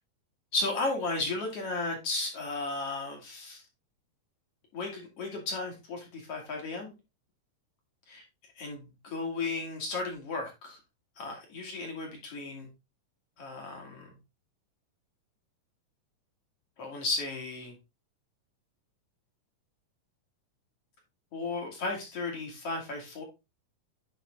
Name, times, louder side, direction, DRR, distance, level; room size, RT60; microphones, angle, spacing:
voice 1, 0.5-3.6 4.7-6.9 8.1-8.2 8.6-10.8 11.2-12.7 13.4-14.1 16.8-17.7 21.3-23.2, left 3 dB, 50° left, 0 dB, 2.8 m, -34 dB
10.0 x 4.0 x 3.4 m, 0.25 s
omnidirectional pair, 3.8 m